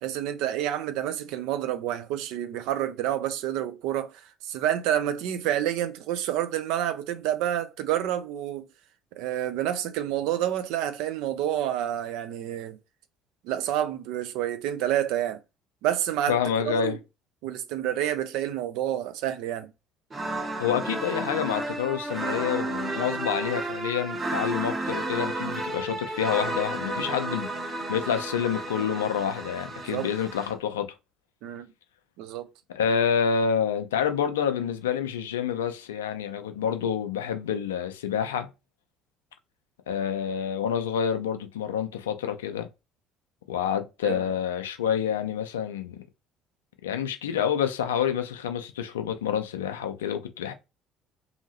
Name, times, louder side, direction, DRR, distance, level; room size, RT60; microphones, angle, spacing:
voice 1, 0.0-8.7 9.1-12.8 13.4-15.4 15.8-16.4 16.6-17.0 17.4-19.7 29.9-30.1 31.4-31.7 32.2-32.5 44.0-44.2, right 11 dB, 60° right, 0.4 m, -29 dB
voice 2, 16.3-17.0 20.6-27.5 27.9-30.9 32.7-38.5 39.9-42.7 43.5-46.0 46.8-50.5, left 8 dB, 75° left, 0.4 m, -28 dB
sound 1, 20.1-30.5, right 2 dB, 30° right, 0.8 m, -32 dB
2.7 x 2.7 x 2.8 m
figure-of-eight pair, 55°, 0 cm